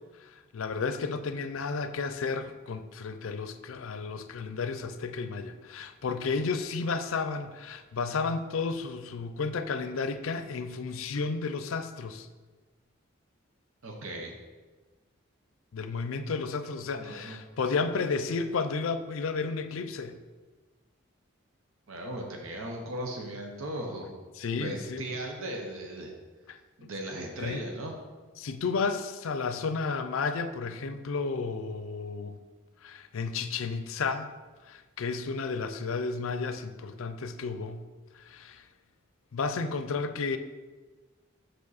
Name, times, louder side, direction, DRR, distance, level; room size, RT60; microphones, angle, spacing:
voice 1, 0.2-12.3 15.7-20.2 24.4-25.1 26.5-26.9 27.4-27.6 28.4-32.4 32.8-34.3 34.7-37.8 38.1-38.6 39.3-40.4, left 4 dB, 80° left, 0.5 m, -32 dB
voice 2, 13.8-14.3 17.0-17.4 21.9-24.2 24.5-26.1 26.8-27.9, right 1 dB, 85° right, 0.9 m, -37 dB
6.1 x 5.2 x 4.1 m
head